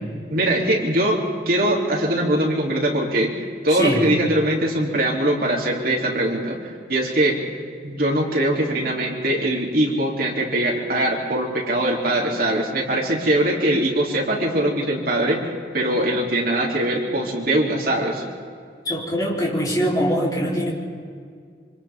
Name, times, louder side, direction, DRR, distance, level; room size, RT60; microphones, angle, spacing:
voice 1, 0.3-3.3 3.6-6.6 6.9-7.4 7.8-15.4 15.7-18.2, right 1 dB, 55° right, -1 dB, 3.2 m, -21 dB
voice 2, 3.7-4.0 18.8-20.7, equal, 20° left, -4 dB, 4.0 m, -22 dB
26.5 x 26.0 x 3.7 m, 2.1 s
head